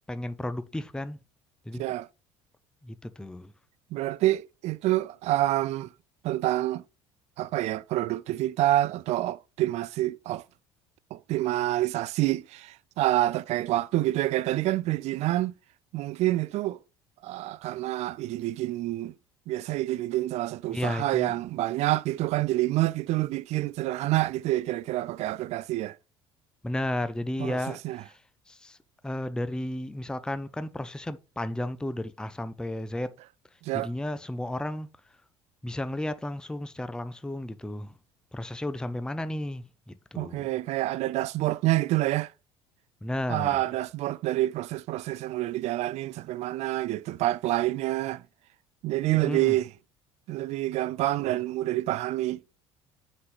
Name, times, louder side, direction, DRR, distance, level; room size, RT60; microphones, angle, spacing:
voice 1, 0.1-1.2 1.7-1.8 2.8-3.5 20.7-21.3 26.6-28.2 28.5-28.8 29.0-33.1 33.7-34.9 35.6-37.9 38.3-40.6 43.0-43.6 49.1-49.6, left 1 dB, 5° left, 0.6 m, -33 dB
voice 2, 1.8-2.1 3.9-5.9 6.2-6.8 7.4-10.4 11.1-15.5 15.9-16.8 17.2-19.1 19.5-26.0 27.4-28.0 33.6-33.9 40.2-42.3 43.3-48.2 48.8-49.7 50.3-52.4, right 16 dB, 45° right, 0.4 m, -27 dB
9.4 x 3.9 x 3.2 m
figure-of-eight pair, 60°, 15 cm